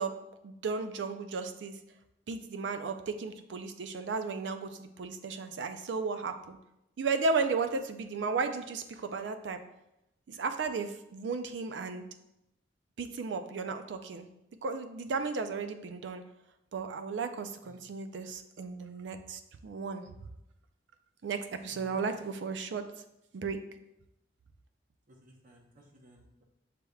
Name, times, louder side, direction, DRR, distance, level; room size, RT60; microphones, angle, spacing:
voice 1, 0.0-1.8 2.3-6.6 7.0-9.6 10.3-12.0 13.0-14.3 14.6-16.2 16.7-20.1 21.2-22.8 23.3-23.6, right 4 dB, 85° right, 8 dB, 0.4 m, -34 dB
voice 2, 21.7-22.0 25.1-26.4, equal, 50° right, 1 dB, 0.8 m, -57 dB
6.5 x 3.4 x 2.3 m, 0.86 s
head